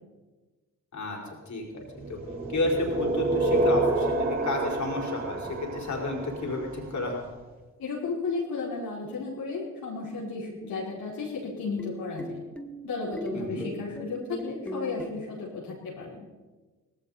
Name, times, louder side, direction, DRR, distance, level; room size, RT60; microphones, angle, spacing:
voice 1, 1.5-1.8 2.1-2.2 2.5-7.2 13.3-13.7, left 2 dB, 50° left, -1 dB, 5.2 m, -31 dB
sound 1, 2.0-6.9, right 2 dB, 35° right, 6.6 m, -28 dB
voice 2, 7.8-12.4 12.8-16.3, left 4 dB, 65° left, -5 dB, 4.6 m, -34 dB
sound 2, 11.4-15.1, equal, 5° left, 1.9 m, -39 dB
18.0 x 17.0 x 4.3 m, 1.2 s
hypercardioid pair, 45°, 37 cm